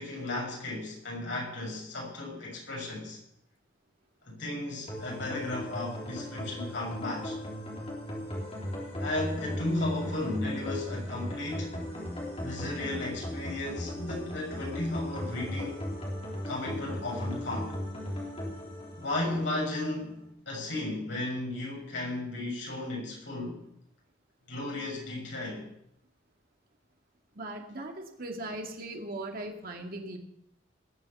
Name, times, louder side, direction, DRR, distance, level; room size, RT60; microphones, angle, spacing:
voice 1, 0.0-3.2 4.2-7.3 9.0-11.8 12.4-15.8 16.4-17.8 19.0-23.6 24.5-25.7, left 2 dB, 65° left, -2 dB, 6.8 m, -34 dB
sound 1, 4.9-19.9, left 1 dB, 30° left, 3.6 m, -37 dB
voice 2, 27.4-30.2, right 1 dB, 45° right, 2 dB, 2.2 m, -39 dB
19.0 x 7.0 x 7.1 m, 0.77 s
head